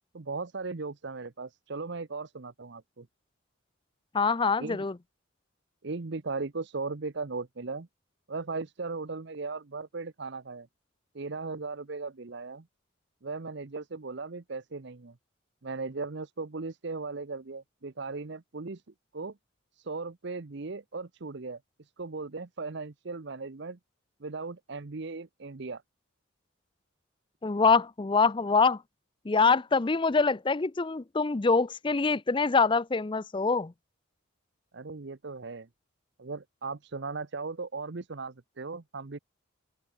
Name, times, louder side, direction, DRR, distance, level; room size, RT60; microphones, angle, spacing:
voice 1, 0.1-3.1 4.6-4.8 5.8-7.9 8.3-10.7 11.1-12.7 13.2-15.2 15.6-18.8 19.1-19.4 19.7-23.8 24.2-25.8 34.7-35.7 36.2-39.2, right 3 dB, 55° right, 0.8 m, -37 dB
voice 2, 4.1-4.9 27.4-28.8 29.3-33.7, left 4 dB, 25° left, 0.5 m, -24 dB
open air
head